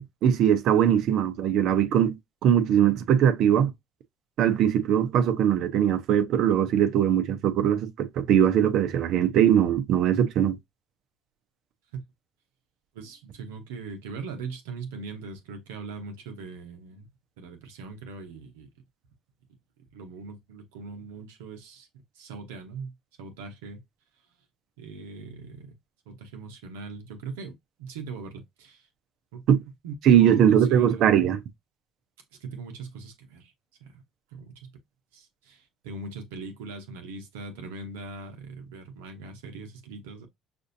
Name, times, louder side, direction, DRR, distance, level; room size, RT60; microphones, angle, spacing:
voice 1, 0.0-2.2 2.4-3.7 4.4-10.6 29.5-29.6 30.0-31.4, right 9 dB, 65° right, 0.8 m, -21 dB
voice 2, 12.9-17.1 17.4-18.7 19.9-21.9 22.2-23.8 24.8-25.8 26.1-27.5 27.8-28.8 29.3-29.6 29.8-31.0 32.4-33.5 33.8-34.0 34.3-34.7 35.1-40.3, right 4 dB, 85° right, 1.0 m, -40 dB
6.0 x 2.6 x 2.7 m
hypercardioid pair, 70°, 0 cm